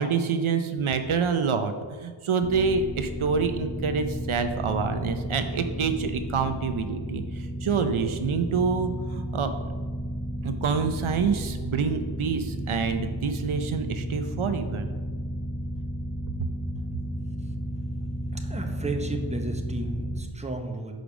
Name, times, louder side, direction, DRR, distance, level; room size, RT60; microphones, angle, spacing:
voice 1, 0.0-9.5 10.4-14.9, right 5 dB, 80° right, 8 dB, 0.7 m, -27 dB
sound 1, 2.4-20.2, right 1 dB, 15° left, 1.3 m, -33 dB
voice 2, 18.3-20.9, right 2 dB, 15° right, 3 dB, 0.9 m, -33 dB
6.6 x 5.1 x 6.0 m, 1.5 s
wide cardioid pair, 55°, 48 cm